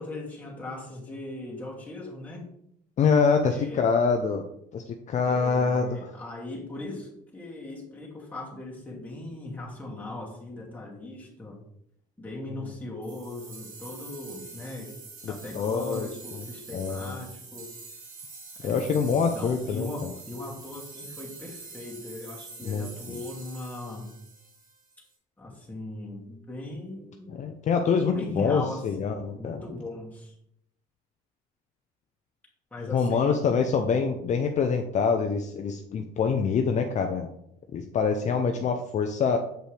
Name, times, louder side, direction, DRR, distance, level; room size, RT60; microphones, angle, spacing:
voice 1, 0.0-2.5 3.4-3.9 5.3-11.6 12.2-14.9 15.3-17.7 18.6-24.1 25.4-27.4 28.1-30.3 32.7-33.6, left 2 dB, 10° left, -4 dB, 2.3 m, -39 dB
voice 2, 3.0-4.4 4.7-6.0 15.2-16.1 16.7-17.2 18.6-19.9 22.6-23.2 27.4-29.6 32.9-37.3 37.7-39.4, left 5 dB, 45° left, 4 dB, 0.6 m, -25 dB
sound 1, 13.0-25.0, right 4 dB, 55° right, 2.1 m, -45 dB
7.5 x 5.2 x 3.4 m, 0.74 s
cardioid pair, 110°, 17 cm